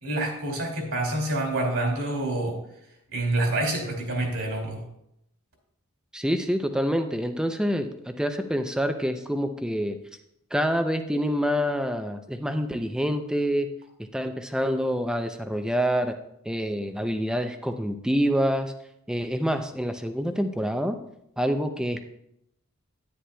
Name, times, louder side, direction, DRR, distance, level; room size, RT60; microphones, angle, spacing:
voice 1, 0.0-2.6 3.1-4.8, right 2 dB, 65° right, 1 dB, 2.4 m, -27 dB
voice 2, 6.1-10.0 10.5-13.7 14.1-16.1 16.5-18.7 19.1-21.0 21.4-22.0, equal, 5° right, 7 dB, 0.4 m, -26 dB
10.0 x 9.6 x 2.2 m, 0.79 s
head